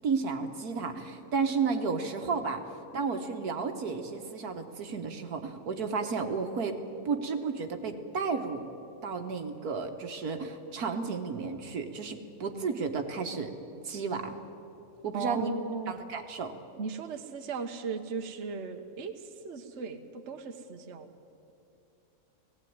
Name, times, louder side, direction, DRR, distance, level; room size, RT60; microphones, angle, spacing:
voice 1, 0.0-2.6 2.9-6.8 7.1-8.6 9.0-13.5 13.8-14.4 15.0-15.5 15.9-16.5, right 5 dB, 75° right, 6 dB, 1.8 m, -32 dB
voice 2, 15.1-15.9 16.8-21.2, right 5 dB, 50° right, 5 dB, 1.3 m, -37 dB
19.0 x 17.0 x 9.5 m, 2.8 s
omnidirectional pair, 1.6 m